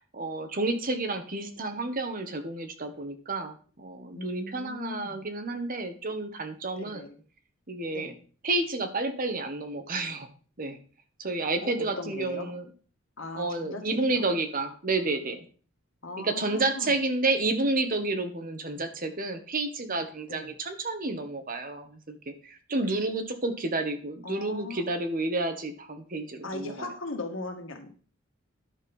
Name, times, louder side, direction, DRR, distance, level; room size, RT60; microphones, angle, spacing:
voice 1, 0.1-7.0 7.7-8.1 8.4-10.3 10.6-10.8 11.2-12.7 13.3-15.4 16.2-26.9, right 2 dB, 45° right, 7 dB, 1.4 m, -30 dB
voice 2, 4.1-5.2 6.8-7.2 7.9-8.2 11.6-12.5 13.2-13.8 14.1-14.2 16.0-16.9 20.3-20.6 24.2-24.8 26.4-27.9, left 2 dB, 70° left, 4 dB, 2.0 m, -38 dB
11.0 x 6.7 x 5.5 m, 0.41 s
head